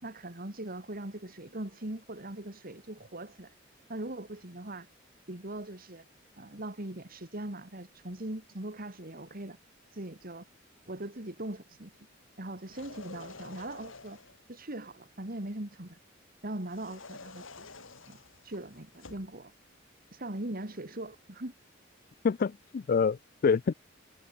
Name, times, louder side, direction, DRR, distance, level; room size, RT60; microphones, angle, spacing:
voice 1, 0.0-3.5 3.9-4.9 5.3-6.0 6.4-9.6 9.9-10.4 10.9-11.9 12.4-14.2 14.5-16.0 16.4-17.7 18.1-18.2 18.4-19.5 20.1-21.5, right 1 dB, 50° right, 2.9 m, -40 dB
sound 1, 12.6-14.5 16.7-19.3, left 3 dB, 85° left, 4.4 m, -49 dB
voice 2, 22.2-23.7, left 5 dB, 45° left, 0.4 m, -27 dB
head